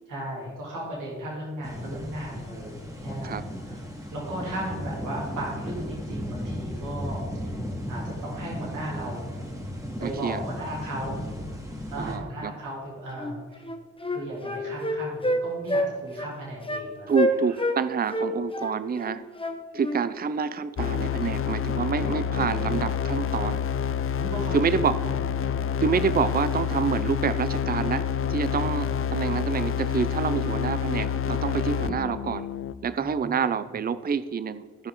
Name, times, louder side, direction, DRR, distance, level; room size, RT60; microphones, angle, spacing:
voice 1, 0.1-2.7 3.0-3.8 4.1-7.5 7.9-9.3 10.0-11.2 11.9-13.6 14.1-17.1 23.7-25.1 26.7-27.0 28.5-29.1 33.0-33.2, right 1 dB, 80° right, -4 dB, 3.2 m, -36 dB
sound 1, 1.6-12.2, equal, 10° right, 2.1 m, -35 dB
voice 2, 10.0-10.4 12.0-12.5 17.1-19.2 19.7-23.6 24.5-25.0 25.8-32.5 32.8-34.9, right 6 dB, 30° right, 14 dB, 0.5 m, -27 dB
Wind instrument woodwind instrument, 13.2-13.3 13.6-15.4 15.7-15.9 16.2-16.3 16.7-16.9 17.1-17.8 18.1-20.0, left 1 dB, 15° left, 1.1 m, -27 dB
sound 2, 20.8-32.7, left 8 dB, 45° left, 0.5 m, -28 dB
15.0 x 5.5 x 3.8 m, 1.5 s
cardioid pair, 55°, 31 cm